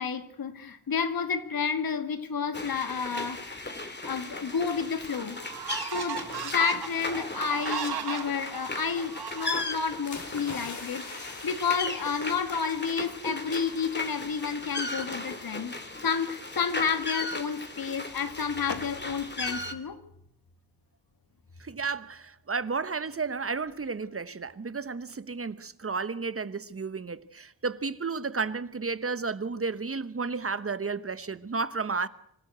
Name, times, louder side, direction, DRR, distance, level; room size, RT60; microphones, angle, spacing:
voice 1, 0.0-3.5 4.0-5.4 5.9-15.7 16.0-20.0, left 6 dB, 65° left, 2.1 m, -30 dB
sound 1, 2.5-19.7, left 2 dB, 30° left, 2.8 m, -37 dB
sound 2, 4.4-4.5 5.0-10.0, right 7 dB, 85° right, 1.9 m, -36 dB
sound 3, 10.1-13.1 13.4-13.6, left 3 dB, 50° left, 4.5 m, -43 dB
voice 2, 21.6-32.1, right 4 dB, 35° right, 1.0 m, -32 dB
26.0 x 13.0 x 8.1 m
cardioid pair, 55°, 37 cm